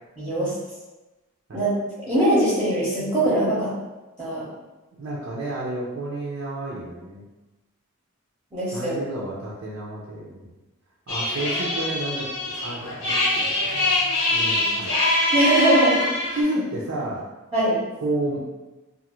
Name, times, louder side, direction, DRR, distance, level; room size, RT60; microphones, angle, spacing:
voice 1, 0.2-0.5 1.5-1.7 2.0-3.7 4.2-4.4 8.5-8.9 15.3-16.4 17.5-17.8, right 1 dB, 10° right, -11 dB, 0.7 m, -21 dB
voice 2, 4.9-7.2 8.7-10.5 11.1-12.3 12.6-15.0 16.3-17.2 18.0-18.4, right 1 dB, 60° right, -6 dB, 0.5 m, -31 dB
sound 1, 11.1-16.4, left 2 dB, 65° left, 0.8 m, -24 dB
2.5 x 2.4 x 2.9 m, 1.1 s
head